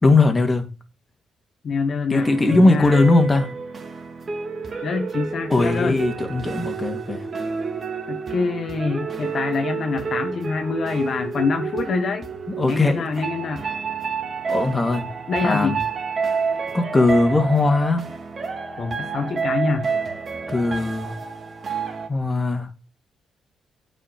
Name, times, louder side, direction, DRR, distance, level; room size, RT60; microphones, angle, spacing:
voice 1, 0.0-0.7 2.1-3.5 5.5-7.2 12.6-13.0 14.5-15.0 15.4-15.8 16.7-18.0 20.5-21.2 22.1-22.7, left 2 dB, 25° left, 2.4 m, -19 dB
voice 2, 1.6-3.0 4.8-6.0 8.1-12.3 12.6-13.7 15.3-15.8 18.8-19.9, left 4 dB, 55° left, 1.3 m, -25 dB
sound 1, 2.1-22.1, right 5 dB, 45° right, 2.5 m, -29 dB
8.9 x 5.6 x 6.9 m
cardioid pair, 80°, 0 cm